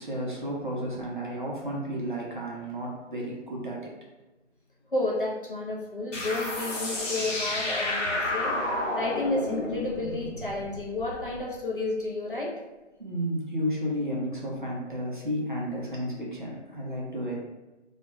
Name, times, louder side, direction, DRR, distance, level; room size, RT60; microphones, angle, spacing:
voice 1, 0.0-3.9 13.0-17.4, equal, 45° right, -4 dB, 0.5 m, -32 dB
voice 2, 4.9-8.5 9.0-12.5, left 2 dB, 45° left, -4 dB, 0.5 m, -31 dB
sound 1, 6.1-11.4, left 2 dB, 85° left, 0.9 m, -31 dB
2.2 x 2.2 x 3.1 m, 1.1 s
figure-of-eight pair, 180°, 36 cm